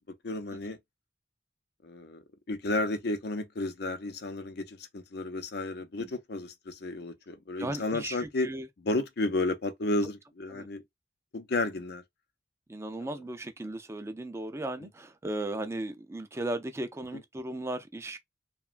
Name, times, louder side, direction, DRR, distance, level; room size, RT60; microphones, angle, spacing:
voice 1, 0.2-0.8 1.8-8.5 8.8-10.8 11.3-12.0, left 2 dB, 65° left, 0.6 m, -32 dB
voice 2, 7.6-8.7 10.5-10.7 12.7-18.2, right 1 dB, 15° right, 0.4 m, -36 dB
2.9 x 2.2 x 2.4 m
head